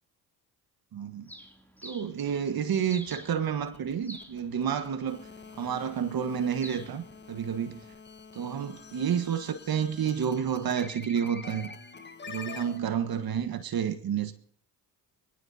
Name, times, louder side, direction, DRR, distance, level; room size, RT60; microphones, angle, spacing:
voice 1, 0.9-1.3 1.8-5.2 5.6-7.8 8.3-11.7 12.3-14.3, right 8 dB, 50° right, 1.5 m, -30 dB
Bird, 1.3-7.9, equal, 5° left, 2.9 m, -50 dB
sound 1, 3.2-12.8, left 4 dB, 25° left, 1.4 m, -46 dB
22.5 x 17.5 x 2.8 m
hypercardioid pair, 60°, 46 cm